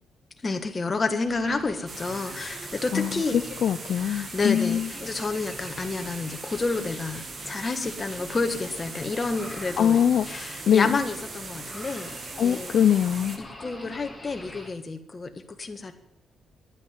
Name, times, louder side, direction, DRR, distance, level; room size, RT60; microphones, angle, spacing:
voice 1, 0.4-3.4 4.0-12.1 12.4-12.7 13.4-15.3 15.6-15.9, left 3 dB, 30° left, 6 dB, 1.6 m, -30 dB
sound 1, 1.3-14.7, left 1 dB, 10° left, 2.5 m, -45 dB
sound 2, 1.9-13.4, right 4 dB, 45° right, 1.8 m, -40 dB
voice 2, 2.9-4.9 9.8-10.2 10.7-11.0 12.4-13.4, left 9 dB, 65° left, 8 dB, 0.6 m, -22 dB
10.5 x 9.1 x 9.5 m, 0.78 s
cardioid pair, 115°, 0 cm